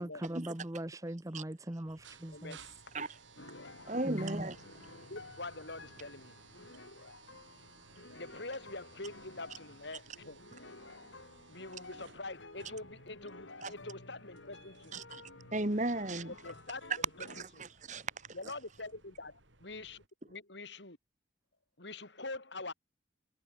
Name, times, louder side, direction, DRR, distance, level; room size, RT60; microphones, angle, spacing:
voice 1, 0.0-2.6 4.0-4.5, right 1 dB, 15° right, 0.8 m, -40 dB
sound 1, 1.8-20.1, right 4 dB, 85° right, 7.2 m, -60 dB
voice 2, 2.3-2.6 5.1-6.4 8.1-10.4 11.5-15.0 16.3-17.3 17.6-17.7 18.3-19.3 19.6-21.0 21.8-22.7, left 2 dB, 70° left, 4.3 m, -45 dB
sound 2, 3.4-17.4, left 2 dB, 85° left, 5.6 m, -53 dB
voice 3, 3.9-4.9 13.6-13.7 14.9-15.2 15.5-16.3 17.3-18.1, right 2 dB, 40° right, 1.8 m, -36 dB
head